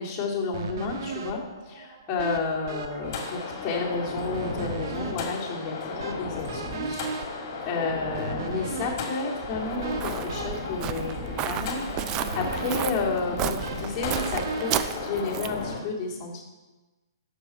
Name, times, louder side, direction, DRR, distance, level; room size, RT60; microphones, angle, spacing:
voice 1, 0.0-1.4 1.7-7.0 7.7-11.2 11.4-16.4, left 3 dB, 25° left, -4 dB, 2.5 m, -31 dB
sound 1, 0.5-15.8, right 4 dB, 55° right, 1.2 m, -38 dB
sound 2, 3.0-15.8, left 4 dB, 40° left, 2.1 m, -35 dB
Walk footsteps, 9.4-15.7, right 11 dB, 25° right, 0.4 m, -33 dB
9.4 x 6.8 x 4.4 m, 1.2 s
hypercardioid pair, 140°, 2 cm